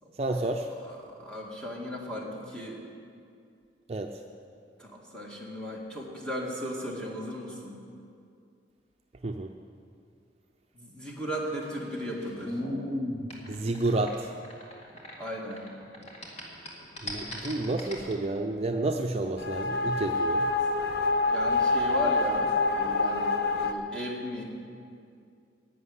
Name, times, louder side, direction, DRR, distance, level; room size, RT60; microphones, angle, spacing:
voice 1, 0.2-0.7 3.9-4.1 9.2-9.5 13.5-14.3 17.0-20.5, right 2 dB, 35° right, 3 dB, 0.6 m, -30 dB
voice 2, 0.8-2.8 4.8-7.8 10.7-12.6 15.2-15.6 21.3-24.4, equal, 5° left, -3 dB, 2.1 m, -36 dB
sound 1, 11.3-15.7 15.9-18.1, left 1 dB, 40° left, 2.3 m, -36 dB
sound 2, 19.4-23.7, left 3 dB, 60° left, 0.7 m, -26 dB
11.0 x 8.5 x 9.8 m, 2.4 s
head